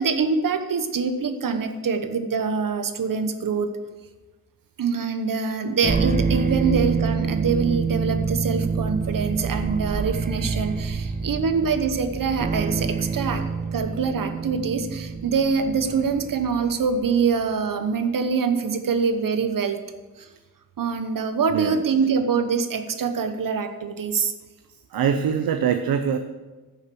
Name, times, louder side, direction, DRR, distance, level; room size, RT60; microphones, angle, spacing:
voice 1, 0.0-3.7 4.8-13.4 13.7-19.8 20.2-20.3 20.8-24.3, right 5 dB, 70° right, 8 dB, 1.1 m, -24 dB
sound 1, 5.8-17.2, right 5 dB, 25° right, 0.5 m, -27 dB
voice 2, 21.5-21.8 24.9-26.2, right 8 dB, 90° right, 8 dB, 0.7 m, -24 dB
10.5 x 6.5 x 6.9 m, 1.3 s
wide cardioid pair, 115°, 35 cm